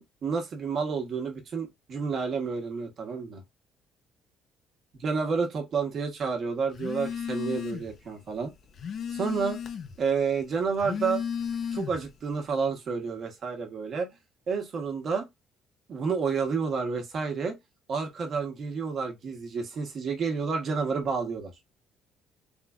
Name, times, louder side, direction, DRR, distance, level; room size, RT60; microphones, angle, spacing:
voice 1, 0.0-3.4 4.9-8.5 9.1-9.6 10.0-11.2 11.7-14.1 14.5-15.3 15.9-17.5 17.9-21.5, right 5 dB, 50° right, 1.2 m, -30 dB
Telephone, 6.7-8.0 8.4-10.0 10.7-12.2, left 7 dB, 50° left, 0.7 m, -34 dB
3.6 x 3.2 x 2.4 m
cardioid pair, 115°, 0 cm